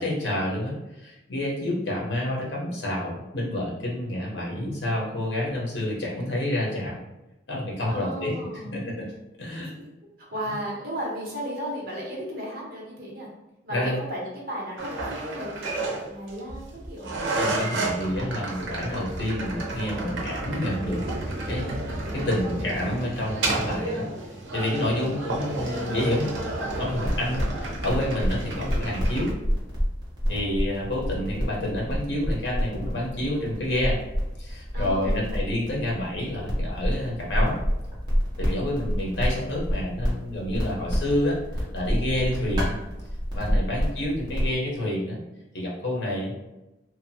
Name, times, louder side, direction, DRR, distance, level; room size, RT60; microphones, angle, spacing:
voice 1, 0.0-7.0 7.5-8.4 8.7-9.1 9.4-9.7 10.5-10.6 13.7-14.0 17.4-24.1 24.5-26.3 26.8-29.3 30.3-34.0 34.4-37.6 38.4-42.8 43.3-45.2 45.5-46.3, left 1 dB, 65° left, -3 dB, 0.9 m, -29 dB
voice 2, 7.9-8.9 9.5-9.9 10.3-13.3 13.6-17.1 25.0-25.6 30.4-30.6 34.7-35.3, equal, 50° right, -4 dB, 0.9 m, -35 dB
sound 1, 14.8-29.3, right 2 dB, 85° right, 0.6 m, -31 dB
sound 2, 26.6-44.5, equal, 25° right, 0.8 m, -29 dB
2.8 x 2.2 x 2.7 m, 0.96 s
head